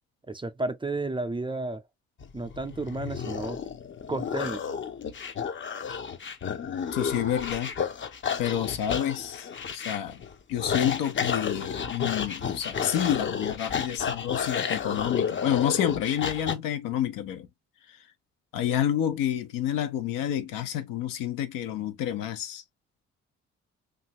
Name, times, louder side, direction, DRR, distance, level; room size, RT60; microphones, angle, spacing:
voice 1, 0.3-1.8 2.3-3.6 4.1-4.6, right 2 dB, 15° right, 0.4 m, -32 dB
sound 1, 2.2-16.5, left 6 dB, 35° left, 0.6 m, -32 dB
voice 2, 6.9-7.7 8.4-10.2 10.5-17.5 18.5-22.6, left 10 dB, 75° left, 0.6 m, -29 dB
2.8 x 2.5 x 2.8 m
hypercardioid pair, 45°, 34 cm